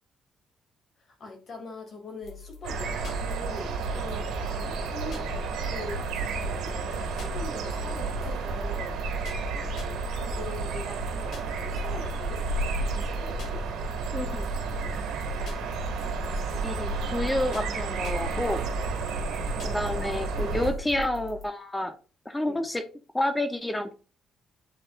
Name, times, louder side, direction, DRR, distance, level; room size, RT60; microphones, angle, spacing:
voice 1, 1.0-6.0 6.4-9.0 10.1-12.4 12.8-13.6 19.1-19.3 22.5-22.6, left 2 dB, 50° left, 2 dB, 2.6 m, -42 dB
sound 1, 2.2-21.5, equal, 75° left, 1.7 m, -43 dB
sound 2, 2.6-20.7, right 3 dB, 90° right, 1.7 m, -31 dB
voice 2, 14.1-14.5 16.6-18.6 19.6-21.9 22.3-22.8 23.1-24.0, left 1 dB, 15° left, 8 dB, 0.8 m, -29 dB
8.7 x 4.3 x 2.5 m, 0.35 s
cardioid pair, 90°, 0 cm